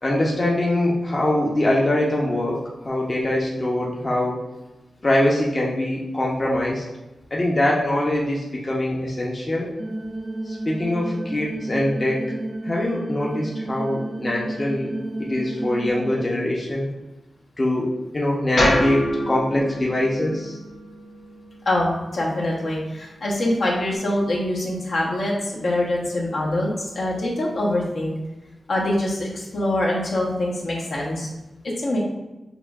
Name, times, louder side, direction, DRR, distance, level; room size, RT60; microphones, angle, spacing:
voice 1, 0.0-2.6 2.8-4.4 5.0-6.8 7.3-9.7 10.5-12.2 12.6-14.9 15.3-16.9 17.6-20.6, left 1 dB, 30° left, -4 dB, 0.7 m, -23 dB
sound 1, 9.8-16.3, right 1 dB, 30° right, 0.5 m, -31 dB
sound 2, 18.6-22.7, left 1 dB, 90° left, 1.5 m, -27 dB
voice 2, 21.6-28.1 28.7-31.3 31.6-32.0, left 1 dB, 70° left, -4 dB, 1.1 m, -24 dB
6.6 x 2.6 x 2.4 m, 1.0 s
wide cardioid pair, 115°, 0 cm